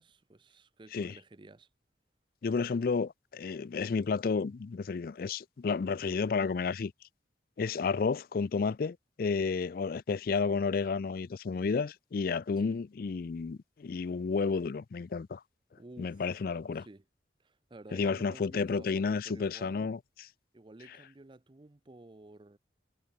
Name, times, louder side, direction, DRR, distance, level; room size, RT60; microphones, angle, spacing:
voice 1, 0.0-1.7 12.6-12.8 15.8-16.2 16.8-17.0 17.4-19.9 20.5-22.6, right 2 dB, 30° right, 0.6 m, -52 dB
voice 2, 2.4-6.9 7.6-15.4 16.0-16.9 17.9-20.0, left 5 dB, 55° left, 0.4 m, -31 dB
head